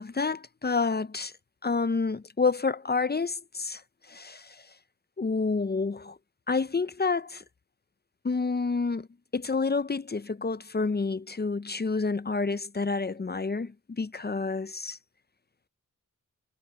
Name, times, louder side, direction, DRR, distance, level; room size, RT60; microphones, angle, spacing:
voice 1, 0.0-1.3 1.6-3.8 4.1-4.7 5.2-6.2 6.5-7.4 8.2-9.1 9.3-15.0, left 4 dB, 30° left, 0.5 m, -29 dB
wide cardioid pair, 90°, 33 cm